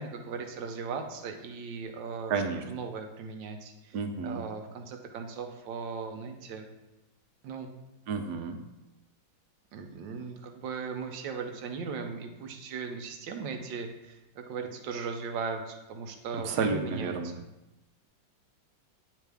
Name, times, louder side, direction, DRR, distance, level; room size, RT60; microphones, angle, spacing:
voice 1, 0.0-2.3 2.7-4.0 4.2-6.7 7.4-7.7 9.7-17.4, right 5 dB, 80° right, 5 dB, 1.4 m, -38 dB
voice 2, 2.3-2.6 3.9-4.4 8.1-8.6 16.4-17.3, right 5 dB, 65° right, 3 dB, 1.0 m, -31 dB
9.2 x 3.2 x 3.4 m, 0.98 s
omnidirectional pair, 2.0 m